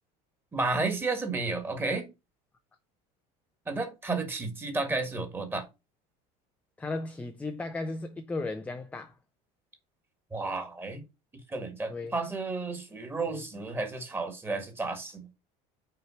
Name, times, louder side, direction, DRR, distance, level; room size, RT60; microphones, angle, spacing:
voice 1, 0.5-2.1 3.7-5.7 10.3-11.0 11.5-15.3, right 3 dB, 15° right, 1.8 m, -32 dB
voice 2, 6.8-9.1 11.9-12.2 13.3-13.4, left 2 dB, 10° left, 0.5 m, -35 dB
5.7 x 4.6 x 5.7 m
cardioid pair, 145°, 17 cm